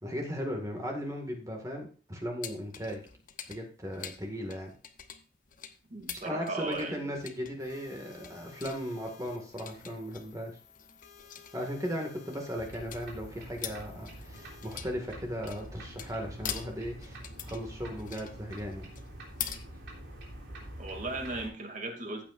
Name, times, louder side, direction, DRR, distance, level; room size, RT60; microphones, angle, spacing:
voice 1, 0.0-3.0 3.5-4.7 6.2-10.6 11.5-18.9, equal, 20° right, 1 dB, 1.9 m, -37 dB
sound 1, 2.4-19.6, left 9 dB, 50° left, 0.9 m, -44 dB
voice 2, 5.9-7.1 20.8-22.2, right 2 dB, 45° right, 3 dB, 2.5 m, -36 dB
sound 2, 7.6-14.8, left 7 dB, 80° left, 2.9 m, -56 dB
sound 3, 12.6-21.5, right 1 dB, 80° right, 3.4 m, -46 dB
14.5 x 8.5 x 2.5 m, 0.38 s
head